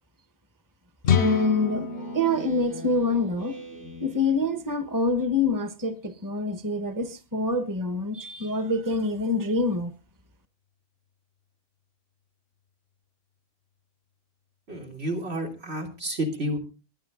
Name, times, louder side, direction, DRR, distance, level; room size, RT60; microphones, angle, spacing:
sound 1, 1.0-4.8, left 6 dB, 80° left, 1.1 m, -29 dB
voice 1, 1.2-1.9 2.1-3.6 4.0-9.9, left 2 dB, 20° right, 9 dB, 1.2 m, -26 dB
Speech synthesizer, 1.7-4.8, right 1 dB, 50° right, 3.8 m, -44 dB
voice 2, 14.7-16.6, equal, 75° right, 1 dB, 3.4 m, -30 dB
21.0 x 9.7 x 3.8 m, 0.33 s
omnidirectional pair, 1.1 m